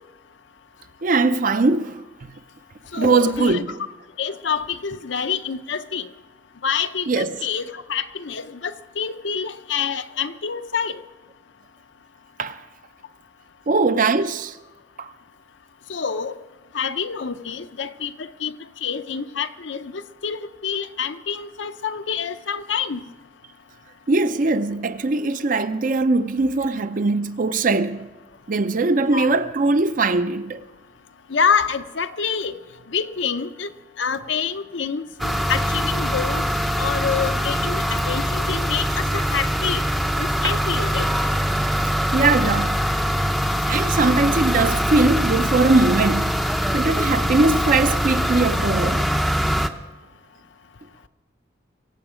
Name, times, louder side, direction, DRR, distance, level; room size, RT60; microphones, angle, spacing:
voice 1, 1.0-1.9 3.0-3.7 7.1-7.3 12.4-12.5 13.7-14.5 24.1-28.0 28.5-30.6 40.4-40.5 41.6-41.7 42.1-42.8 43.7-46.3 46.7-49.0, right 3 dB, 45° right, 0.6 m, -20 dB
voice 2, 2.9-3.6 4.2-6.0 6.6-7.6 7.9-10.9 15.9-16.3 16.7-18.1 18.4-18.5 18.8-19.9 20.2-20.4 20.6-23.0 29.0-29.3 31.3-32.5 32.9-33.7 34.0-36.4 36.8-39.8 40.2-41.1, left 6 dB, 70° left, 0.7 m, -26 dB
sound 1, 35.2-49.7, equal, ahead, 0.5 m, -23 dB
23.5 x 8.0 x 5.0 m
head